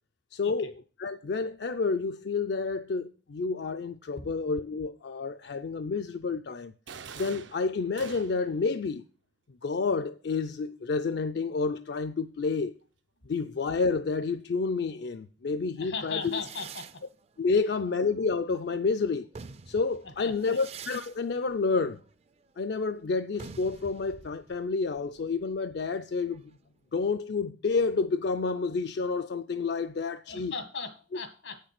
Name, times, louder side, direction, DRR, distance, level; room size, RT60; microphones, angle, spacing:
voice 1, 0.3-0.7 1.0-6.7 7.1-9.0 9.6-12.8 13.3-16.4 17.4-19.3 19.7-22.0 22.6-26.6 26.9-30.5, left 4 dB, 60° left, 0.4 m, -29 dB
sound 1, 6.9-8.6, right 6 dB, 85° right, 0.7 m, -45 dB
voice 2, 15.8-16.9 17.6-17.7 20.0-20.6 30.3-31.6, left 4 dB, 90° left, 1.9 m, -38 dB
sound 2, 16.2-18.7 19.1-26.6, right 5 dB, 35° right, 0.4 m, -48 dB
8.5 x 6.6 x 5.9 m
head